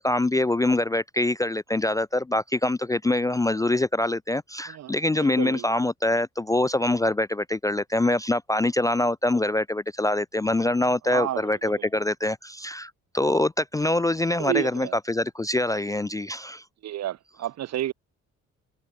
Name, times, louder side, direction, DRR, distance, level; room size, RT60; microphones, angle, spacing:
voice 1, 0.0-16.6, left 2 dB, 10° left, 0.4 m, -24 dB
voice 2, 5.2-5.7 11.1-11.8 14.4-15.0 16.8-17.9, right 12 dB, 60° right, 0.8 m, -31 dB
cardioid pair, 90°, 30 cm